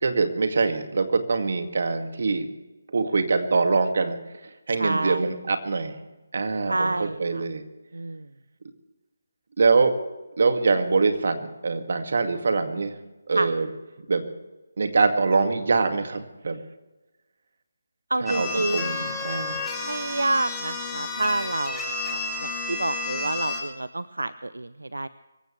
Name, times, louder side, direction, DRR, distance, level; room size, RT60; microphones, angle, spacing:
voice 1, 0.0-2.5 2.9-4.2 4.7-6.0 6.3-7.6 9.6-10.0 10.4-12.9 13.3-13.7 14.1-14.2 14.8-16.6 18.2-19.7, right 4 dB, 60° right, 6 dB, 2.2 m, -24 dB
voice 2, 4.8-5.3 6.7-7.4 7.9-8.3 13.3-13.5 18.1-19.2 19.8-25.1, right 2 dB, 85° right, 15 dB, 0.6 m, -28 dB
sound 1, 18.3-23.6, left 3 dB, 5° left, 3.0 m, -31 dB
24.5 x 15.0 x 3.3 m, 1.1 s
figure-of-eight pair, 155°, 0 cm